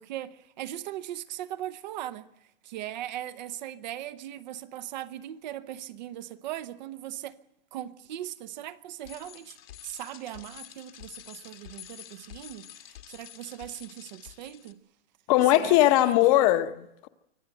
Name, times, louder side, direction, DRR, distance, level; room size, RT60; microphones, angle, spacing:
voice 1, 0.0-2.3 2.6-7.4 7.7-9.6 9.8-14.8 15.5-16.1, right 12 dB, 50° right, 0.8 m, -39 dB
Bicycle, 9.0-14.7, left 12 dB, 75° left, 1.9 m, -48 dB
voice 2, 15.3-17.1, left 14 dB, 35° left, 1.0 m, -20 dB
24.5 x 15.5 x 7.8 m
hypercardioid pair, 155°, 29 cm